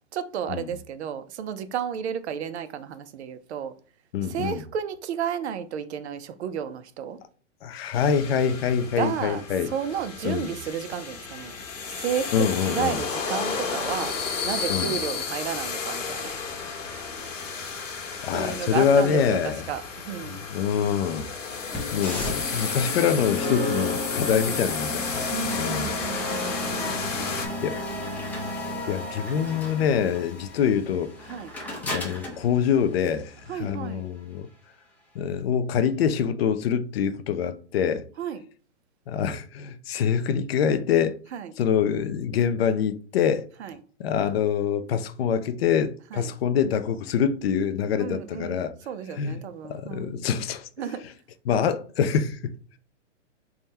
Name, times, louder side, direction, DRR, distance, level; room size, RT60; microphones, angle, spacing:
voice 1, 0.1-3.7 4.2-7.2 9.0-9.4 9.7-11.5 11.9-14.2 14.4-16.3 18.3-20.5 24.4-24.6 25.3-27.0 31.3-31.5 33.5-34.1 38.2-38.4 41.3-41.5 43.6-43.8 46.1-46.3 48.0-50.3 50.8-51.0, right 8 dB, 60° right, 0.6 m, -32 dB
voice 2, 4.1-4.6 7.6-9.7 10.2-10.5 12.3-13.0 14.7-15.0 17.6-17.7 18.2-19.6 20.5-21.3 21.9-25.2 25.6-26.0 27.6-27.8 28.9-31.1 31.8-34.5 35.2-38.1 39.1-41.2 41.6-43.5 44.0-48.7 49.2-49.4 49.7-50.7 51.5-52.6, left 7 dB, 55° left, 0.4 m, -25 dB
sound 1, 7.9-27.5, left 5 dB, 90° left, 1.2 m, -33 dB
sound 2, 21.7-33.7, left 2 dB, 5° left, 0.6 m, -33 dB
3.5 x 2.2 x 4.1 m
hypercardioid pair, 140°, 37 cm